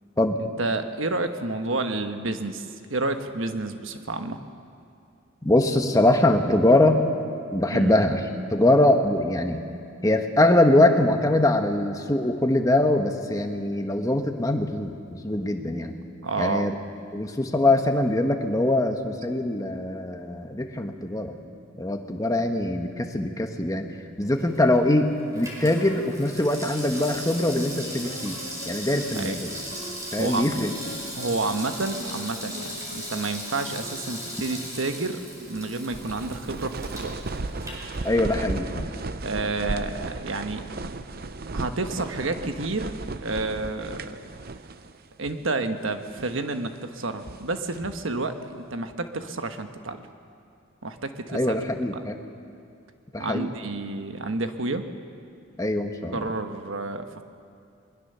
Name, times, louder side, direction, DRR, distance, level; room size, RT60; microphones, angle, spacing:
voice 1, 0.6-4.4 7.7-8.0 16.2-16.7 29.1-29.4 30.2-30.5 31.2-37.2 39.2-40.6 41.5-42.9 43.2-44.2 45.2-50.0 50.8-51.5 51.9-52.1 53.2-54.9 56.1-57.2, right 3 dB, 80° right, 7 dB, 1.3 m, -30 dB
voice 2, 5.4-7.0 7.5-8.2 8.5-9.6 10.0-16.0 16.4-16.7 17.1-21.4 21.8-23.9 24.2-28.4 28.6-29.5 30.1-30.7 38.0-38.9 51.3-52.2 53.1-53.5 55.6-56.2, left 1 dB, 15° left, 5 dB, 1.3 m, -22 dB
Water tap faucet / Sink (filling or washing), 24.2-38.5 38.8-38.9, equal, 15° right, 4.8 m, -38 dB
Wind instrument woodwind instrument, 25.8-34.8, left 1 dB, 50° left, 2.3 m, -44 dB
sound 1, 35.5-45.0 45.2-45.4 46.0-46.4 47.0-48.1, right 3 dB, 50° right, 0.7 m, -35 dB
21.5 x 20.5 x 6.8 m, 2.4 s
head